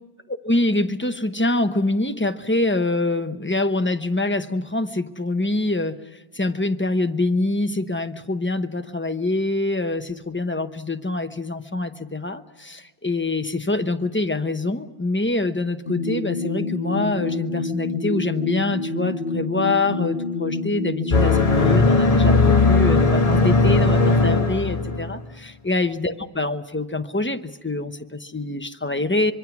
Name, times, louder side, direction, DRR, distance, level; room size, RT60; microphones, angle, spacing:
voice 1, 0.3-29.3, left 2 dB, 10° left, 8 dB, 0.8 m, -25 dB
sound 1, 15.9-21.9, left 3 dB, 55° left, 1.3 m, -28 dB
sound 2, 21.1-25.2, left 3 dB, 35° left, 1.3 m, -17 dB
25.0 x 23.5 x 6.0 m, 1.2 s
omnidirectional pair, 1.1 m